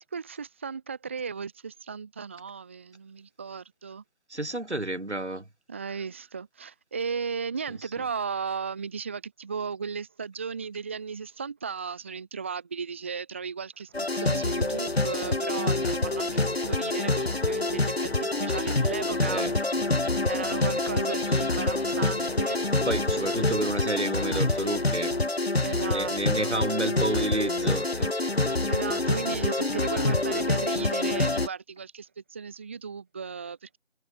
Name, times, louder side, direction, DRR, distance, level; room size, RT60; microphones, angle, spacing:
voice 1, 0.0-4.0 5.7-19.4 20.3-22.6 25.6-26.6 28.7-33.8, right 5 dB, 10° right, 1.8 m, -36 dB
voice 2, 4.3-5.5 19.2-19.5 22.9-25.1 25.8-28.1, right 1 dB, 80° right, 6.4 m, -30 dB
sound 1, 13.9-31.5, left 2 dB, 65° left, 5.0 m, -26 dB
figure-of-eight pair, 170°, 34 cm